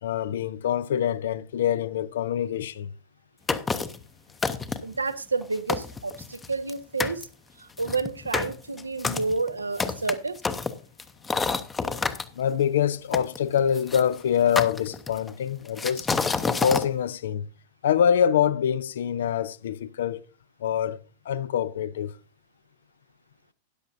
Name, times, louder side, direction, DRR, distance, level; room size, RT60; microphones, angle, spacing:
voice 1, 0.0-2.9 12.3-16.1 16.5-17.5 17.8-20.2 20.6-21.0 21.3-22.1, left 9 dB, 60° left, 0.5 m, -25 dB
sound 1, 3.5-4.0 4.4-5.0 5.4-5.5 5.7-6.7 7.0-7.2 7.8-12.2 13.1-14.0 14.6-15.3 15.8-16.9, left 4 dB, 15° left, 0.8 m, -28 dB
voice 2, 4.8-7.3 7.6-10.4, right 3 dB, 80° right, 0.8 m, -30 dB
13.0 x 10.0 x 2.7 m
figure-of-eight pair, 90°, 0 cm